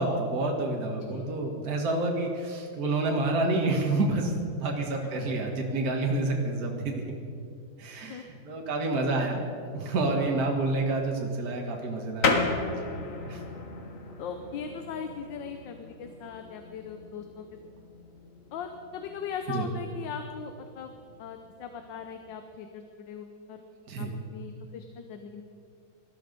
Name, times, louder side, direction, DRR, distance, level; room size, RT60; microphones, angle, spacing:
voice 1, 0.0-7.0 7.8-9.4 9.7-12.5 13.2-13.4 19.5-19.7 23.9-24.1, right 2 dB, 50° right, 0 dB, 2.0 m, -28 dB
sound 1, 12.2-22.4, left 3 dB, 45° left, 1.6 m, -35 dB
voice 2, 14.2-17.5 18.5-20.9 21.2-23.6 24.0-25.4, left 6 dB, 75° left, 6 dB, 1.6 m, -39 dB
19.0 x 13.5 x 5.2 m, 2.4 s
omnidirectional pair, 2.1 m